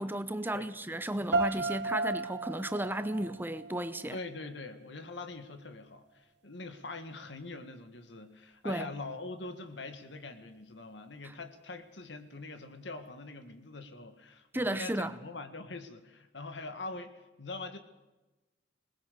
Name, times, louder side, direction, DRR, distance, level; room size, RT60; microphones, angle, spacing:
voice 1, 0.0-4.2 8.6-8.9 14.5-15.1, right 1 dB, 10° right, 0.8 m, -34 dB
sound 1, 1.3-4.3, right 3 dB, 70° right, 1.3 m, -34 dB
voice 2, 1.6-2.0 4.1-17.8, left 3 dB, 75° left, 1.9 m, -43 dB
21.0 x 20.0 x 6.8 m
head